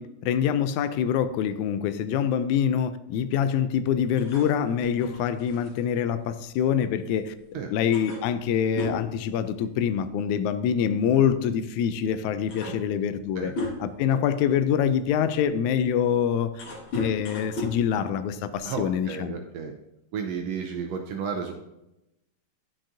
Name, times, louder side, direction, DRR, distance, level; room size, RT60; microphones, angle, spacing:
voice 1, 0.0-7.3 7.7-13.5 13.8-16.6 16.9-19.4, left 8 dB, 85° left, 12 dB, 1.9 m, -25 dB
sound 1, 4.1-7.2 7.5-7.6 7.9-10.1 10.4-10.6 11.6-11.7 12.2-14.1 14.7-18.8, left 2 dB, 50° left, 1.8 m, -37 dB
voice 2, 18.6-19.7 20.1-21.6, right 6 dB, 75° right, 3 dB, 1.6 m, -33 dB
10.5 x 6.2 x 2.6 m, 0.89 s
omnidirectional pair, 3.4 m